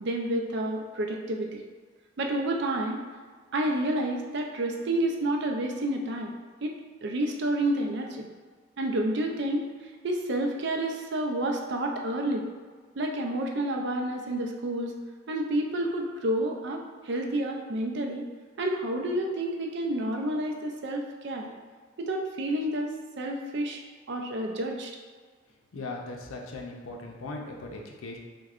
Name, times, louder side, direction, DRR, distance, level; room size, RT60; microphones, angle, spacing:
voice 1, 0.0-1.6 2.2-3.0 3.5-6.3 6.6-6.8 7.0-8.3 8.8-9.7 10.0-12.5 13.0-14.9 15.3-18.3 18.6-21.5 22.0-23.8 24.1-24.9, right 1 dB, 55° right, 2 dB, 0.4 m, -29 dB
voice 2, 25.7-28.2, left 2 dB, 75° left, 1 dB, 0.5 m, -38 dB
6.2 x 2.2 x 2.4 m, 1.5 s
head